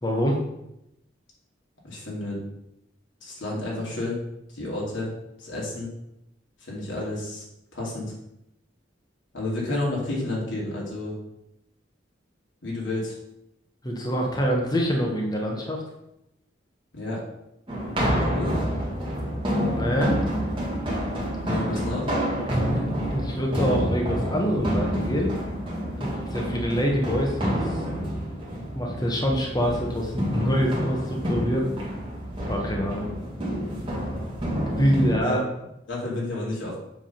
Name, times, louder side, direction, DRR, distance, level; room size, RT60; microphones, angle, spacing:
voice 1, 0.0-0.4 13.8-15.8 19.5-20.2 21.5-21.7 22.3-22.8 23.1-25.3 26.0-27.8 28.7-31.7 32.5-33.0 34.8-35.4, equal, 20° left, 0 dB, 1.0 m, -26 dB
voice 2, 1.8-2.4 3.2-4.2 4.5-5.1 5.4-5.9 6.6-7.4 7.7-8.1 9.3-11.1 12.6-13.2 16.9-17.2 18.3-18.6 21.5-22.1 35.2-35.4 35.9-36.8, left 2 dB, 90° left, -4 dB, 2.6 m, -30 dB
sound 1, 17.7-35.2, equal, 25° right, 1.8 m, -28 dB
7.7 x 3.6 x 5.7 m, 0.85 s
head